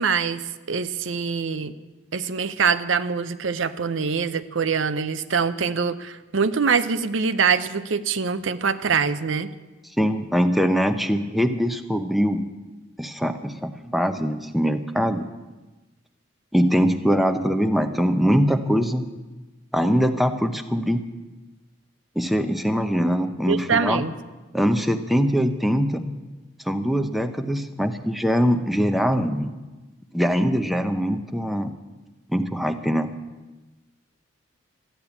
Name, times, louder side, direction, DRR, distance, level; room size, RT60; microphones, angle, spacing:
voice 1, 0.0-1.7 2.1-9.5 23.5-24.1, right 5 dB, 80° right, 12 dB, 0.7 m, -24 dB
voice 2, 10.0-12.5 13.0-15.3 16.5-19.1 19.7-21.1 22.2-24.0 24.5-26.1 26.6-29.5 30.1-31.7 32.3-33.1, equal, ahead, 7 dB, 0.7 m, -22 dB
13.5 x 10.5 x 8.2 m, 1.2 s
head